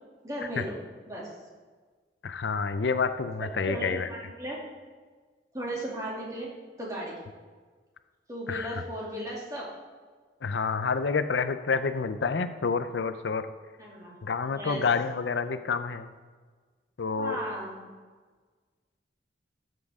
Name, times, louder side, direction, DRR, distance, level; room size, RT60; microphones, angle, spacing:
voice 1, 0.2-0.8 1.1-1.3 3.4-4.6 5.5-6.5 6.8-7.2 8.3-9.7 13.8-14.1 14.5-14.8 17.2-17.8, right 1 dB, 20° right, -5 dB, 2.5 m, -36 dB
voice 2, 2.2-4.1 8.5-8.8 10.4-13.4 14.2-16.1 17.0-17.4, left 5 dB, 90° left, 11 dB, 0.5 m, -28 dB
13.0 x 7.6 x 3.6 m, 1.5 s
head